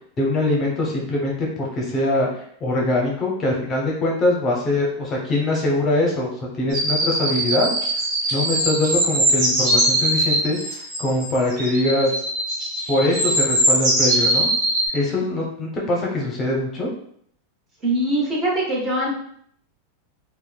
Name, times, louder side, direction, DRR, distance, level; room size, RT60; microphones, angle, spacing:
voice 1, 0.2-6.3 6.6-7.7 8.3-12.1 12.9-14.5 14.9-16.9, left 1 dB, 30° left, -2 dB, 0.7 m, -22 dB
sound 1, 6.7-14.9, right 1 dB, 50° right, 1.0 m, -21 dB
voice 2, 17.8-19.1, right 1 dB, 30° right, -3 dB, 1.0 m, -22 dB
2.9 x 2.1 x 2.3 m, 0.66 s
hypercardioid pair, 115°, 0 cm